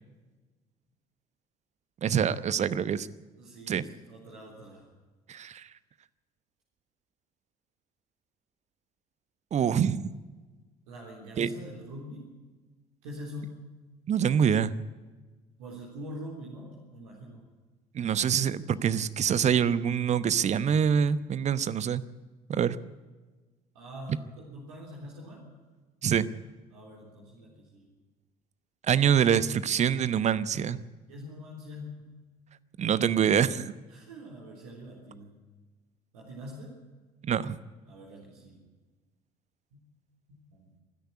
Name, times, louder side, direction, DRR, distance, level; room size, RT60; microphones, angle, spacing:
voice 1, 2.0-3.1 3.7-3.8 5.3-5.7 9.5-10.1 11.4-11.5 14.1-14.7 17.9-22.0 22.5-22.8 26.0-26.3 28.9-30.8 32.8-33.7 37.2-37.6, right 8 dB, 35° right, 16 dB, 0.9 m, -25 dB
voice 2, 3.4-4.9 10.9-12.3 13.0-13.6 15.6-17.4 23.7-25.5 26.7-27.9 31.1-32.0 33.9-35.4 36.1-36.8 37.9-38.7 39.7-39.8 40.3-40.7, equal, 70° right, -2 dB, 3.6 m, -44 dB
26.0 x 10.5 x 9.7 m, 1.3 s
figure-of-eight pair, 55°, 19 cm